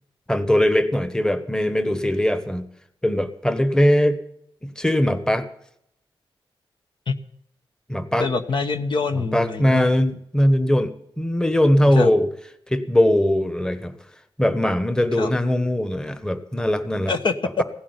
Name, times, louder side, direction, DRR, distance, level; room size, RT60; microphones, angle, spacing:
voice 1, 0.3-2.6 3.0-4.2 4.6-5.5 7.9-8.3 9.1-12.3 12.7-13.9 14.4-17.1, left 1 dB, 5° left, 11 dB, 1.2 m, -20 dB
voice 2, 8.2-9.9 11.9-12.1 15.2-15.3 17.1-17.6, left 4 dB, 60° left, 8 dB, 1.1 m, -24 dB
16.0 x 8.5 x 9.6 m, 0.74 s
cardioid pair, 85°, 9 cm